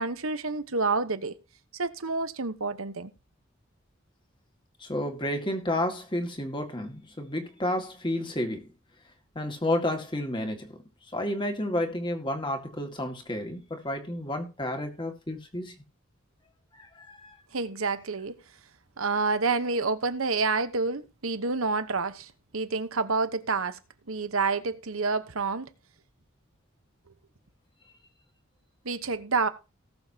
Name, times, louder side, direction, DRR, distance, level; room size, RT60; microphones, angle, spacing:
voice 1, 0.0-1.4 1.7-3.1 17.5-18.3 19.0-23.8 24.1-25.7 28.8-29.5, right 4 dB, 80° right, 1.1 m, -28 dB
voice 2, 4.8-8.7 9.4-10.7 11.1-15.8 16.8-17.4, left 1 dB, 20° left, 2.1 m, -31 dB
18.5 x 7.1 x 2.9 m
head